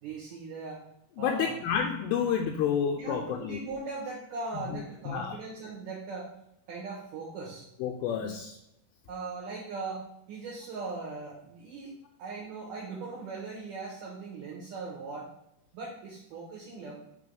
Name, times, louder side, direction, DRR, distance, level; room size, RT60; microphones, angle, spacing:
voice 1, 0.0-0.8 1.2-1.5 3.0-6.3 6.7-7.7 8.2-8.3 9.1-11.9 12.2-15.3 15.7-16.9, right 3 dB, 70° right, -4 dB, 2.2 m, -39 dB
voice 2, 1.2-3.6 4.7-4.8 5.1-5.3 7.8-8.6, left 8 dB, 80° left, 3 dB, 2.3 m, -29 dB
6.7 x 3.4 x 5.1 m, 0.80 s
omnidirectional pair, 4.7 m